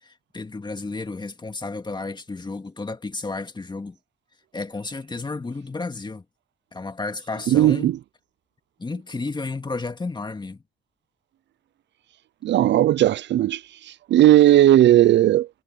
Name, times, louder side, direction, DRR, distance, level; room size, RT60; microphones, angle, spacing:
voice 1, 0.0-4.0 4.5-6.2 6.7-8.0 8.8-10.6, left 3 dB, 20° left, 2.2 m, -32 dB
voice 2, 7.5-8.0 12.4-13.6 14.1-15.5, right 13 dB, 65° right, 0.5 m, -16 dB
cardioid pair, 90°, 20 cm